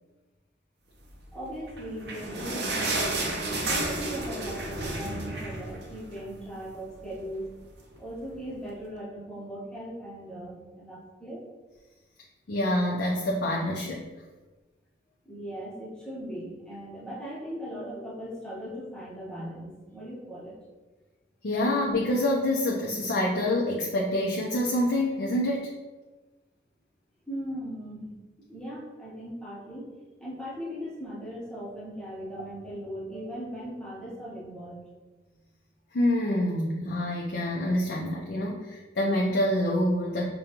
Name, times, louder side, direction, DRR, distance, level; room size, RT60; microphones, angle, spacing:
voice 1, 1.3-7.5 8.0-11.4 15.2-20.6 27.3-28.1 28.4-29.9 30.2-34.8, equal, 5° left, -8 dB, 0.8 m, -39 dB
sound 1, 1.6-6.4 6.7-6.8 7.1-7.3 8.0-8.1, right 2 dB, 60° right, 0.6 m, -31 dB
voice 2, 12.5-14.1 21.4-25.7 35.9-40.2, left 1 dB, 60° left, -3 dB, 0.5 m, -26 dB
5.1 x 2.2 x 2.9 m, 1.2 s
head